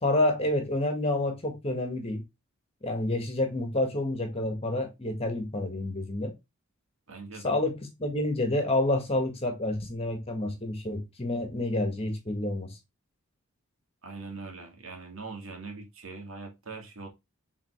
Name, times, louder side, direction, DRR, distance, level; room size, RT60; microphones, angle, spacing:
voice 1, 0.0-2.2 2.8-6.3 7.4-12.8, left 1 dB, 25° left, 1.8 m, -29 dB
voice 2, 7.1-7.5 14.0-17.1, right 3 dB, 65° right, 2.4 m, -42 dB
7.2 x 4.2 x 3.2 m
head